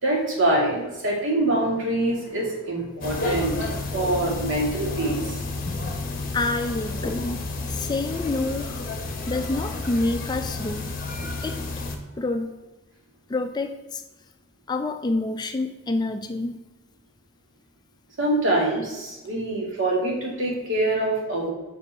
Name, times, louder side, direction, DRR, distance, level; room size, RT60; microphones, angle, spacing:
voice 1, 0.0-3.6 3.9-5.4 18.2-21.5, right 1 dB, 65° right, -1 dB, 2.0 m, -24 dB
sound 1, 3.0-12.0, left 3 dB, 45° left, 0.9 m, -31 dB
voice 2, 6.3-8.7 9.3-10.9 11.4-11.6 12.2-12.5 13.3-14.0 14.7-16.6, left 2 dB, 20° left, 7 dB, 0.3 m, -27 dB
5.5 x 5.0 x 5.4 m, 1.1 s
head